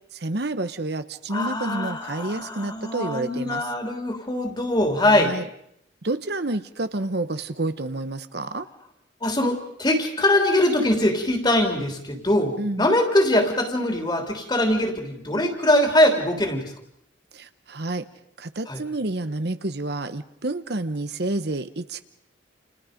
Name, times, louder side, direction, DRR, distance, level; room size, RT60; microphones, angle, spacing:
voice 1, 0.1-3.7 5.0-5.5 6.0-8.7 12.6-12.9 17.3-18.1 18.4-22.0, right 2 dB, 60° right, 11 dB, 1.1 m, -29 dB
voice 2, 1.3-5.4 9.2-16.7 18.7-18.8, left 1 dB, 25° left, 4 dB, 3.3 m, -22 dB
30.0 x 29.0 x 5.2 m, 0.73 s
head